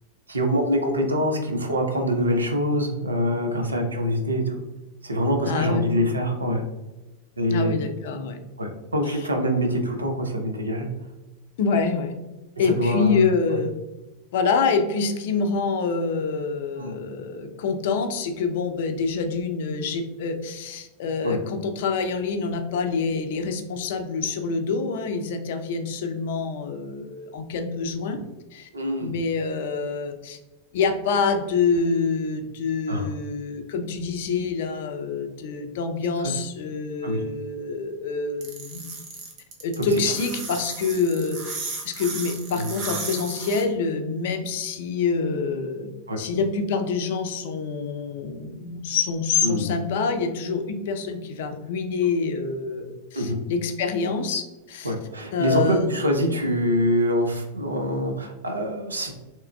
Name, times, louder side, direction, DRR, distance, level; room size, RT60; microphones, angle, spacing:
voice 1, 0.3-4.6 5.0-6.6 7.4-7.7 8.6-10.9 12.8-13.2 16.8-17.0 21.2-21.4 28.7-29.1 32.9-33.1 37.0-37.2 39.8-39.9 42.5-42.7 46.1-46.2 49.4-49.7 53.1-53.4 54.8-59.2, equal, 75° right, 3 dB, 0.5 m, -24 dB
voice 2, 5.5-5.9 7.5-8.4 9.1-9.2 11.6-12.1 12.6-13.7 14.3-28.2 28.5-28.7 29.0-30.4 30.7-38.9 39.6-41.6 41.8-45.9 46.2-54.9 55.3-56.0, left 4 dB, 55° left, 7 dB, 0.4 m, -26 dB
sound 1, 38.4-43.6, right 4 dB, 40° right, 0.8 m, -34 dB
3.4 x 2.9 x 2.2 m, 1.1 s
figure-of-eight pair, 90°, 0 cm